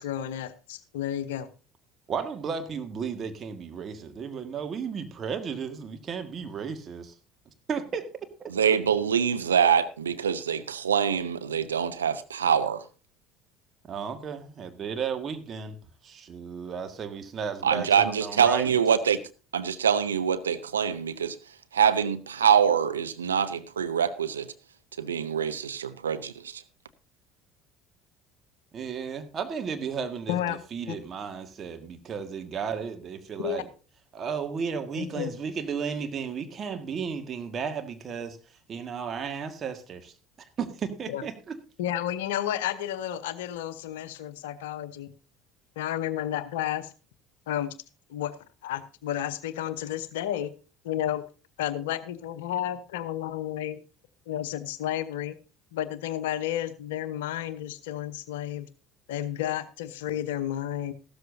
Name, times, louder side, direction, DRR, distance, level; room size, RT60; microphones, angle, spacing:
voice 1, 0.0-1.5 30.3-30.6 30.9-31.0 33.4-33.6 35.0-35.3 41.1-41.2 41.8-45.1 45.8-46.9 47.5-47.7 48.1-48.3 48.6-50.5 50.8-51.2 51.6-53.8 54.3-55.4 55.7-58.7 59.1-60.9, left 11 dB, 65° left, 0.8 m, -31 dB
voice 2, 2.1-7.1 7.7-8.3 13.9-15.8 16.0-18.8 28.7-33.7 34.1-38.4 38.7-40.1 40.6-41.6, right 6 dB, 35° right, 1.7 m, -34 dB
voice 3, 8.5-12.8 17.6-19.2 19.5-21.4 21.7-24.5 25.0-26.6, right 7 dB, 75° right, 0.6 m, -24 dB
14.5 x 13.0 x 2.7 m
figure-of-eight pair, 60°, 0 cm